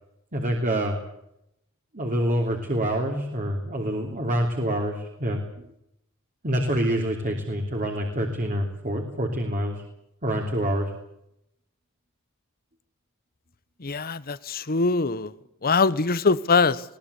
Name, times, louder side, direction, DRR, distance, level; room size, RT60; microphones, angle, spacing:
voice 1, 0.3-1.0 1.9-5.7 6.4-9.8 10.2-10.9, equal, 40° right, 2 dB, 3.2 m, -26 dB
voice 2, 13.8-15.3 15.6-16.8, left 4 dB, 45° left, 17 dB, 1.0 m, -22 dB
21.5 x 18.0 x 8.3 m, 0.80 s
head